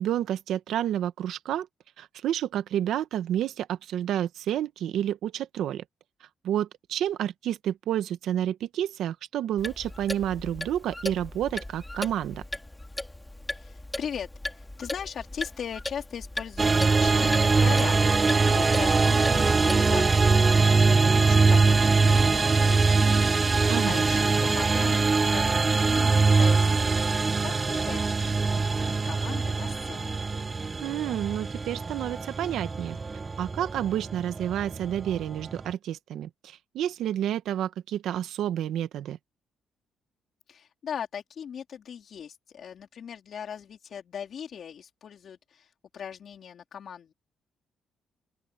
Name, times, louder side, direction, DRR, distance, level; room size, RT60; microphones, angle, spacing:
voice 1, 0.0-1.7 2.0-5.8 6.4-12.4 23.7-24.0 30.8-33.0 33.4-39.2, right 11 dB, 80° right, 1.3 m, -30 dB
Clock, 9.6-20.1, left 1 dB, 10° left, 2.6 m, -38 dB
voice 2, 13.5-16.7 17.0-23.4 23.9-26.9 27.4-30.2 40.5-47.1, left 8 dB, 60° left, 3.8 m, -39 dB
sound 1, 16.6-35.7, right 4 dB, 30° right, 0.5 m, -23 dB
open air
cardioid pair, 90°, 0 cm